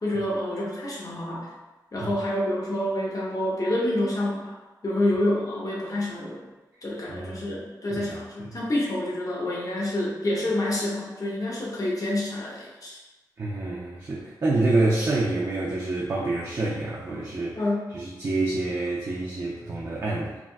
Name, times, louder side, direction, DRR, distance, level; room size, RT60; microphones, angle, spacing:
voice 1, 0.0-1.5 1.9-4.5 4.8-6.4 6.8-13.0 17.6-17.9, left 1 dB, 50° left, -4 dB, 0.8 m, -28 dB
voice 2, 7.1-7.6 7.9-8.5 13.4-17.6 17.9-20.4, right 2 dB, 45° right, -4 dB, 0.4 m, -27 dB
3.4 x 2.4 x 2.2 m, 1.2 s
wide cardioid pair, 75°, 8 cm